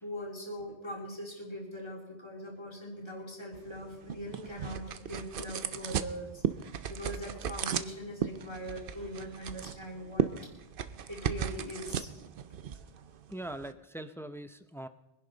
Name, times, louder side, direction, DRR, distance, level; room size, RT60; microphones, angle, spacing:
voice 1, 0.0-10.3 11.1-12.1, equal, 25° left, -2 dB, 3.0 m, -41 dB
sound 1, 3.5-13.7, right 8 dB, 60° right, 0.8 m, -36 dB
voice 2, 13.3-14.9, right 1 dB, 5° left, 10 dB, 0.4 m, -41 dB
23.0 x 11.0 x 4.0 m, 0.92 s
omnidirectional pair, 1.1 m